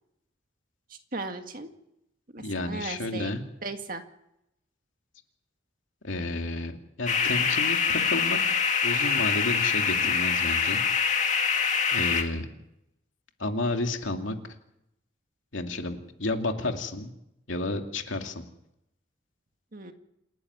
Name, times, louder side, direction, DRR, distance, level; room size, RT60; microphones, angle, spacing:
voice 1, 1.1-1.7 2.3-3.3 3.6-4.0 19.7-19.9, right 3 dB, 45° right, 6 dB, 2.0 m, -36 dB
voice 2, 2.4-3.4 6.0-8.4 8.8-10.8 11.9-12.5 13.4-14.4 15.5-17.1 17.5-18.4, left 2 dB, 85° left, 4 dB, 2.5 m, -31 dB
sound 1, 7.1-12.2, left 6 dB, 40° left, 2.1 m, -25 dB
28.0 x 11.0 x 9.6 m, 0.83 s
head